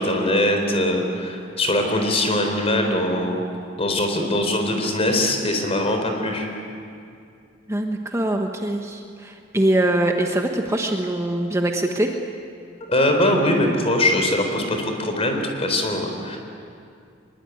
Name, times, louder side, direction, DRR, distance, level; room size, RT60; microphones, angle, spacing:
voice 1, 0.0-3.4 3.8-6.5 12.9-16.4, left 1 dB, 35° left, 4 dB, 4.2 m, -22 dB
voice 2, 7.7-12.1, right 1 dB, 15° right, 3 dB, 1.3 m, -23 dB
24.0 x 22.0 x 9.5 m, 2.4 s
head